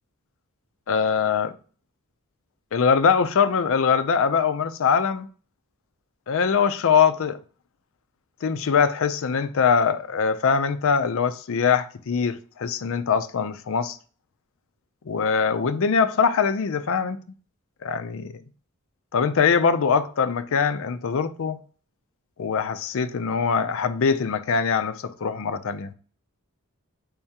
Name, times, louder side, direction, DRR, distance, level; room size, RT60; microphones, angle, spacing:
voice 1, 0.9-1.5 2.7-5.3 6.3-7.4 8.4-14.0 15.1-17.2 17.8-18.4 19.1-21.6 22.4-25.9, left 6 dB, 65° left, 0.4 m, -22 dB
5.4 x 3.5 x 2.8 m
head